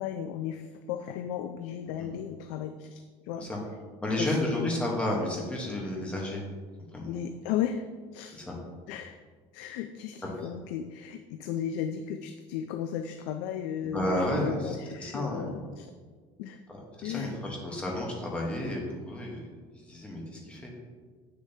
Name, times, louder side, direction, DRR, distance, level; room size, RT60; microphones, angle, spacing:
voice 1, 0.0-3.5 4.2-4.8 7.1-7.8 8.1-8.4 8.9-9.2 9.5-15.9 16.4-16.6 17.0-17.4, left 9 dB, 75° left, 8 dB, 0.4 m, -35 dB
voice 2, 4.0-6.4 6.9-7.2 8.3-8.6 13.8-15.6 17.0-18.8 19.0-19.5 19.9-20.2 20.5-20.7, left 1 dB, 10° left, -2 dB, 1.0 m, -31 dB
7.5 x 6.7 x 2.7 m, 1.5 s
cardioid pair, 180°, 15 cm